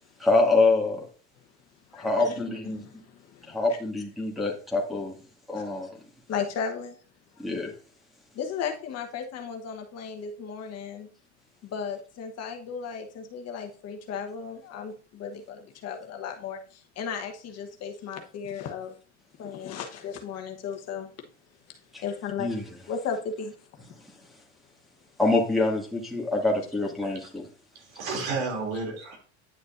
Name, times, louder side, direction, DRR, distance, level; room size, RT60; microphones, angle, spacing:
voice 1, 0.2-1.1 1.9-2.9 3.5-5.1 5.5-6.0 7.4-7.7 21.9-22.0 22.4-22.6 25.2-27.4, left 3 dB, ahead, 2.0 m, -25 dB
voice 2, 1.9-3.6 5.6-5.7 6.3-7.0 7.4-7.5 8.3-11.1 11.6-18.9 19.4-21.1 21.7-23.5, left 6 dB, 45° left, 1.2 m, -35 dB
voice 3, 27.7-29.2, right 4 dB, 80° right, 3.0 m, -32 dB
10.0 x 6.5 x 2.6 m
supercardioid pair, 110°, 35 cm